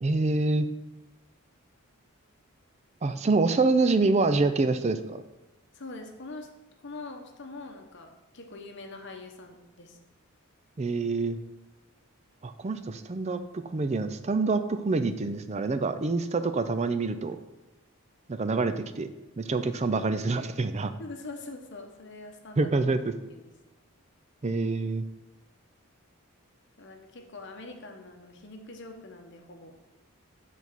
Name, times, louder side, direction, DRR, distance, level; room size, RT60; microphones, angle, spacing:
voice 1, 0.0-0.7 3.0-5.2 10.8-11.4 12.4-17.4 18.3-19.1 19.4-20.9 22.6-23.1 24.4-25.0, right 3 dB, 30° right, 10 dB, 0.4 m, -26 dB
voice 2, 5.7-6.5 6.8-10.0 21.0-22.7 23.3-23.5 26.8-29.8, left 2 dB, 55° left, 3 dB, 0.9 m, -44 dB
7.0 x 4.1 x 6.1 m, 1.1 s
head